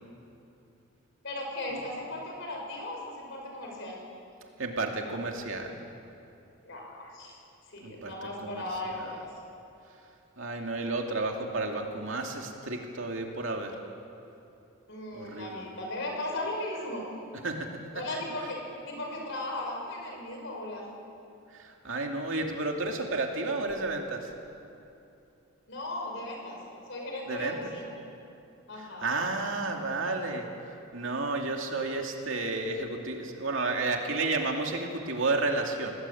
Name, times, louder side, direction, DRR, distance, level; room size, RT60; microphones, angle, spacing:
voice 1, 1.2-4.0 6.6-7.4 7.7-9.4 14.9-17.1 17.9-20.9 25.7-26.6 26.9-27.9 28.7-29.3, left 1 dB, 55° left, 0 dB, 5.8 m, -37 dB
voice 2, 4.6-5.8 7.8-8.6 10.4-13.8 15.1-15.6 17.4-17.7 21.6-24.3 27.3-27.6 29.0-30.5 30.9-35.9, right 3 dB, 60° right, 2 dB, 2.6 m, -31 dB
25.0 x 19.0 x 8.6 m, 2.7 s
head